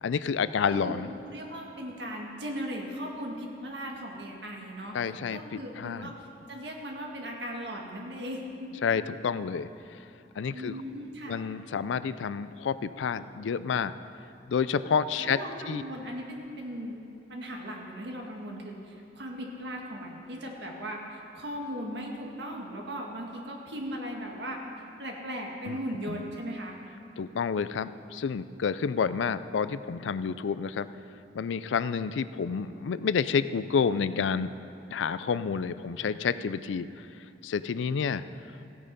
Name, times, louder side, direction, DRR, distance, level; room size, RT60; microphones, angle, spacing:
voice 1, 0.0-1.1 4.9-6.1 8.8-9.7 10.4-10.7 11.3-13.9 14.5-15.4 15.7-15.8 25.7-25.8 26.1-26.2 27.2-30.9 31.3-34.5 34.9-36.9 37.4-38.2, left 6 dB, 90° left, 14 dB, 0.4 m, -29 dB
voice 2, 1.3-8.7 10.5-11.4 15.2-17.0 17.3-24.6 25.0-26.7, equal, 70° right, 0 dB, 1.8 m, -38 dB
15.5 x 8.7 x 5.4 m, 2.7 s
head